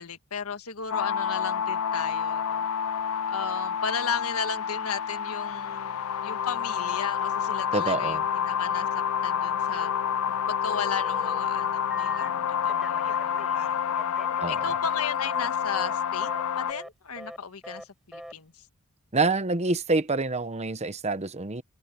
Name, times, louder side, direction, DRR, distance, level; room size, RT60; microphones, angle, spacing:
voice 1, 0.0-2.7 3.3-6.0 6.2-9.9 10.3-14.2 14.5-16.3 16.6-18.7, left 6 dB, 90° left, 1.5 m, -35 dB
sound 1, 0.9-16.7, left 8 dB, 70° left, 0.4 m, -28 dB
voice 2, 7.7-8.2 14.4-14.6 19.1-21.6, right 3 dB, 30° right, 1.0 m, -26 dB
Telephone, 9.7-10.3 10.7-12.3 12.7-15.5 15.7-16.0 16.2-16.4 16.7-16.9 17.2-17.4 17.6-17.9 18.1-18.3, equal, ahead, 5.6 m, -44 dB
head